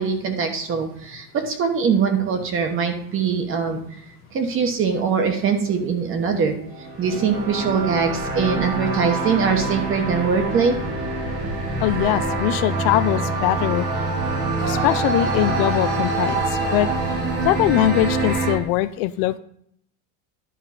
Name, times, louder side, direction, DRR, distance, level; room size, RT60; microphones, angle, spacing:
voice 1, 0.0-3.8 4.3-6.5 7.0-10.8, right 6 dB, 30° right, 6 dB, 1.1 m, -22 dB
sound 1, 6.6-18.5, right 2 dB, 75° right, 3.5 m, -25 dB
voice 2, 11.8-13.9 14.7-16.9 17.4-19.4, left 14 dB, 65° left, 14 dB, 0.5 m, -21 dB
11.0 x 3.8 x 5.6 m, 0.68 s
cardioid pair, 165°, 42 cm